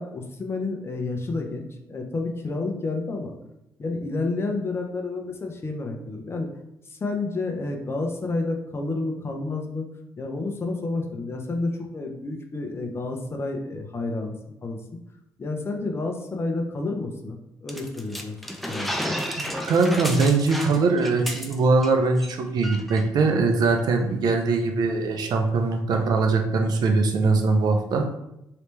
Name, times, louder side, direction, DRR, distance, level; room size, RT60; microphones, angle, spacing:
voice 1, 0.0-3.3 3.8-6.5 6.9-9.8 10.2-14.3 14.6-14.8 15.4-18.4 18.7-19.1, left 3 dB, 35° left, 2 dB, 0.7 m, -30 dB
sound 1, 17.7-21.9 22.2-22.3 22.6-23.0, equal, ahead, 0.5 m, -32 dB
voice 2, 19.6-28.1, right 3 dB, 65° right, 4 dB, 0.6 m, -21 dB
3.2 x 2.9 x 3.2 m, 0.84 s
cardioid pair, 75°, 7 cm